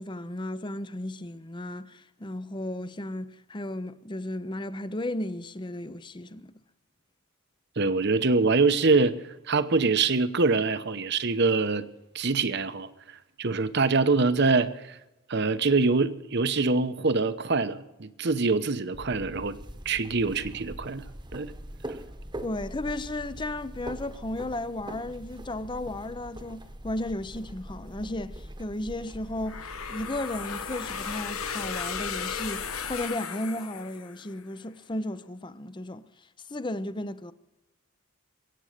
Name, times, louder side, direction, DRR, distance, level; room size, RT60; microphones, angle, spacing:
voice 1, 0.0-6.5 22.4-36.1 36.5-37.3, left 1 dB, 20° left, 0.6 m, -34 dB
voice 2, 7.8-11.9 12.1-15.0 15.3-19.6 19.8-21.0 21.3-21.5, right 3 dB, 50° right, 0.9 m, -24 dB
sound 1, 18.9-33.0, right 1 dB, 20° right, 1.1 m, -43 dB
sound 2, 29.5-34.4, left 6 dB, 75° left, 1.2 m, -35 dB
22.5 x 9.0 x 6.5 m
head